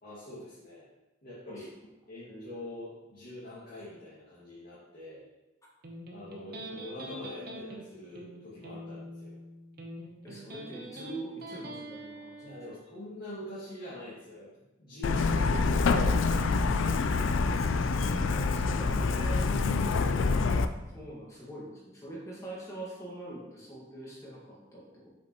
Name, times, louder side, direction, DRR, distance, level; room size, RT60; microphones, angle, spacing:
voice 1, 0.0-0.8 1.2-1.8 2.1-5.2 6.1-9.3 12.4-14.5 14.8-16.6, left 1 dB, 50° left, -10 dB, 2.0 m, -44 dB
Electric guitar, 5.8-12.8, right 1 dB, 50° right, 0.9 m, -44 dB
voice 2, 10.2-12.5 18.0-19.6 20.9-25.1, right 1 dB, 15° left, -5 dB, 1.6 m, -43 dB
Truck, 15.0-20.6, left 4 dB, 85° left, 0.4 m, -26 dB
7.3 x 5.0 x 3.0 m, 1.0 s
head